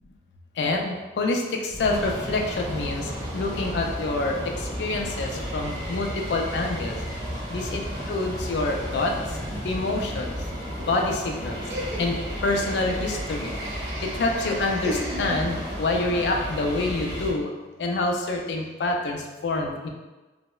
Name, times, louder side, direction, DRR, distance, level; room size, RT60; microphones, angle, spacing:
voice 1, 0.6-7.0 7.5-7.8 8.1-9.1 9.6-10.4 10.8-11.6 12.0-12.2 12.4-13.5 14.0-17.5 17.8-19.9, left 2 dB, 75° left, 1 dB, 0.3 m, -27 dB
sound 1, 1.7-17.3, equal, 25° right, 0.5 m, -33 dB
Laughter, 11.7-15.9, equal, 80° right, 0.5 m, -35 dB
2.9 x 2.0 x 2.2 m, 1.2 s
head